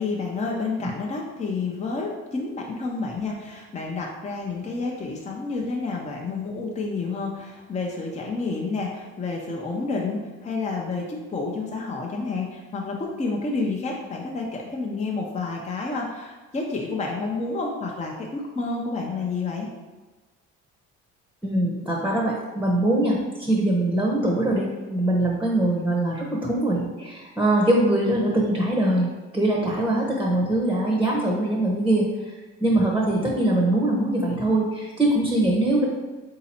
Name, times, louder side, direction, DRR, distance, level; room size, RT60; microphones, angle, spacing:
voice 1, 0.0-19.7, left 3 dB, 25° left, -1 dB, 0.7 m, -29 dB
voice 2, 21.4-35.9, right 1 dB, 5° right, -3 dB, 0.9 m, -22 dB
3.9 x 2.9 x 4.2 m, 1.2 s
cardioid pair, 90°, 30 cm